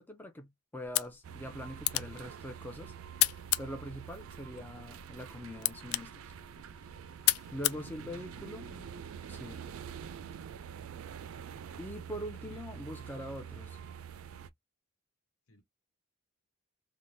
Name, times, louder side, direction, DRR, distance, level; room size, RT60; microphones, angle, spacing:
voice 1, 0.0-2.9 3.6-6.3 7.5-8.7 9.3-9.7 11.8-13.8, equal, 10° left, 0.4 m, -43 dB
sound 1, 0.8-8.8, left 17 dB, 90° left, 0.3 m, -35 dB
sound 2, 1.2-14.5, right 8 dB, 70° right, 0.3 m, -46 dB
voice 2, 7.9-9.0 10.6-10.8 12.1-13.3 15.5-15.6, left 1 dB, 75° left, 1.0 m, -57 dB
3.2 x 2.1 x 2.6 m
head